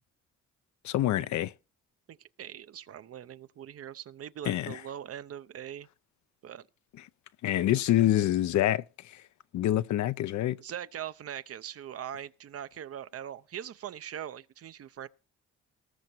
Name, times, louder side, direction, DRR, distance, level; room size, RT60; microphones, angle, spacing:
voice 1, 0.8-1.5 4.5-4.8 7.4-8.8 9.1-9.2 9.5-10.6, left 13 dB, 70° left, 0.6 m, -26 dB
voice 2, 2.1-5.9 6.4-6.7 7.6-7.8 10.6-15.1, right 10 dB, 50° right, 0.7 m, -41 dB
19.5 x 6.5 x 4.5 m
cardioid pair, 90°, 30 cm